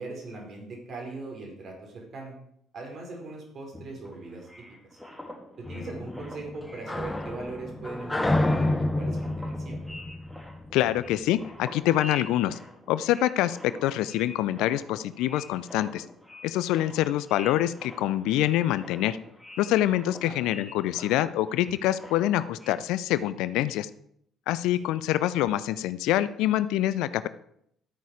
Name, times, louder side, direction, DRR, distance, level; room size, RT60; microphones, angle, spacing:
voice 1, 0.0-2.3 2.7-4.5 5.6-9.9 20.2-20.5, right 3 dB, 45° right, 1 dB, 4.5 m, -40 dB
sound 1, 3.7-7.7 8.0-22.7, left 1 dB, 5° right, 2.8 m, -46 dB
sound 2, 5.7-11.1, left 1 dB, 15° left, 1.2 m, -29 dB
voice 2, 10.7-12.6 12.9-16.0 16.4-19.2 19.6-23.9 24.5-27.3, left 13 dB, 65° left, 15 dB, 0.5 m, -25 dB
12.5 x 9.1 x 4.9 m, 0.71 s
figure-of-eight pair, 50°, 0 cm